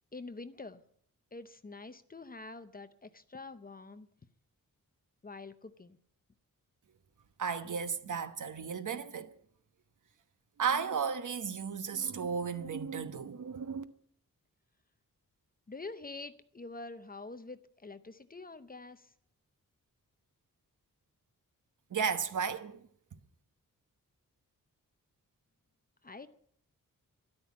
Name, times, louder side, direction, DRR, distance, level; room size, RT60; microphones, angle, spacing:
voice 1, 0.1-0.8 1.3-4.1 5.2-6.0 15.7-19.1 26.0-26.3, left 3 dB, 25° left, 0.7 m, -46 dB
voice 2, 7.4-9.3 10.6-13.8 21.9-22.9, right 6 dB, 60° right, 1.1 m, -34 dB
13.5 x 12.0 x 8.5 m
wide cardioid pair, 175°, 34 cm